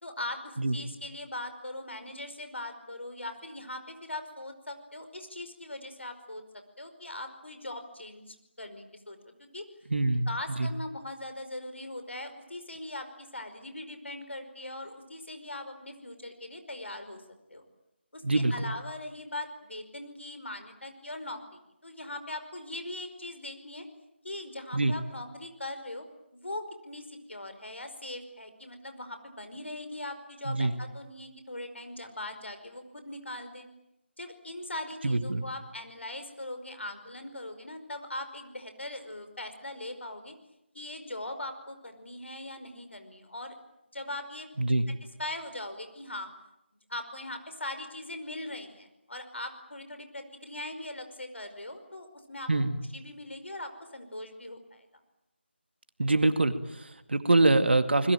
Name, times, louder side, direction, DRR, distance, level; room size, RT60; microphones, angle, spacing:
voice 1, 0.0-6.4 6.8-9.7 10.3-17.2 17.5-17.7 18.1-23.9 24.2-26.0 26.3-33.7 34.2-40.3 40.7-43.5 43.9-44.5 44.9-45.0 45.2-46.3 46.9-52.5 52.9-54.9, left 1 dB, 75° left, 8 dB, 5.2 m, -40 dB
voice 2, 9.9-10.7 18.2-18.7 24.7-24.9 30.5-30.7 35.0-35.4 44.6-44.9 52.5-52.8 56.0-58.1, right 2 dB, 65° right, 9 dB, 2.3 m, -25 dB
28.5 x 21.0 x 9.0 m, 0.88 s
figure-of-eight pair, 160°, 6 cm